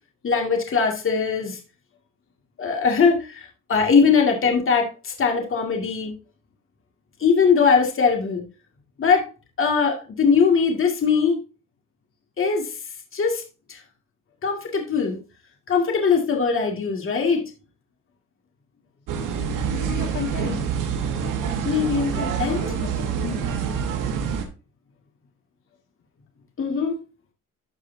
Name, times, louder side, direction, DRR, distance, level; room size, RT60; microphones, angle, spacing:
voice 1, 0.2-1.6 2.6-6.1 7.2-8.4 9.0-9.2 9.6-11.4 12.4-12.7 13.1-13.4 13.7-13.8 14.4-15.2 15.7-17.4 21.6-22.6 26.6-27.0, left 5 dB, 45° left, 2 dB, 2.1 m, -21 dB
sound 1, 19.1-24.4, right 7 dB, 85° right, 1.5 m, -26 dB
voice 2, 19.7-20.6 21.7-22.1 22.5-23.6, left 6 dB, 80° left, 2 dB, 2.2 m, -34 dB
13.0 x 4.8 x 2.7 m, 0.31 s
cardioid pair, 100°, 31 cm